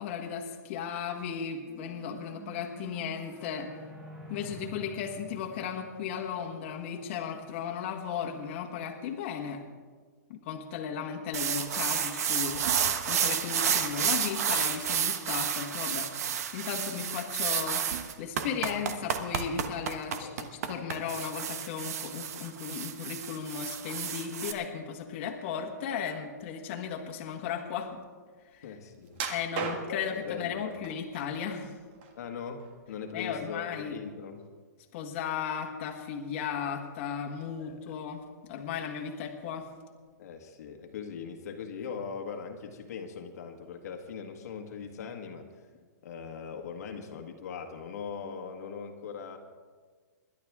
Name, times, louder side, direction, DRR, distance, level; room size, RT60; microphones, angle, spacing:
voice 1, 0.0-3.7 4.3-9.6 10.3-12.7 13.0-16.1 16.5-17.8 18.2-28.0 28.5-28.8 29.3-31.7 33.1-34.0 34.9-38.2 38.5-39.7, left 7 dB, 40° left, 2 dB, 1.5 m, -35 dB
sound 1, 1.4-6.8, right 3 dB, 10° right, 2.0 m, -49 dB
sound 2, 11.3-24.5, right 8 dB, 55° right, 1.2 m, -31 dB
voice 2, 28.6-29.3 29.9-30.8 32.1-34.4 37.6-37.9 40.2-45.5 46.0-49.4, left 6 dB, 60° left, 4 dB, 1.6 m, -40 dB
sound 3, 29.1-30.2 30.8-31.5 31.9-32.8 33.2-33.4 33.9-34.0, right 5 dB, 35° right, 1.6 m, -36 dB
26.0 x 11.5 x 3.6 m, 1.5 s
hypercardioid pair, 160°, 10 cm